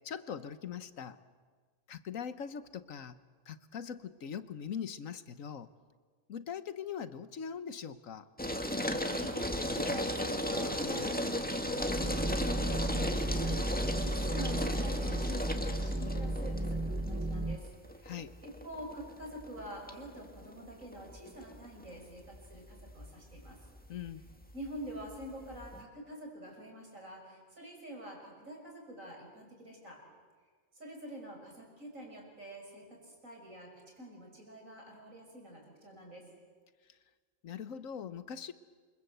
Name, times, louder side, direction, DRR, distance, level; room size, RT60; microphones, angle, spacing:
voice 1, 0.0-1.2 1.9-3.2 3.5-5.7 6.3-8.2 18.0-18.4 23.9-24.2 37.4-38.5, left 7 dB, 90° left, 13 dB, 1.5 m, -41 dB
sound 1, 8.4-25.8, left 1 dB, 5° left, 1.7 m, -36 dB
voice 2, 9.0-18.1 18.4-23.6 24.5-30.0 30.7-36.3, right 1 dB, 80° right, 2 dB, 6.6 m, -47 dB
sound 2, 11.8-17.6, right 1 dB, 10° right, 1.0 m, -34 dB
28.0 x 25.0 x 8.1 m, 1.5 s
omnidirectional pair, 1.4 m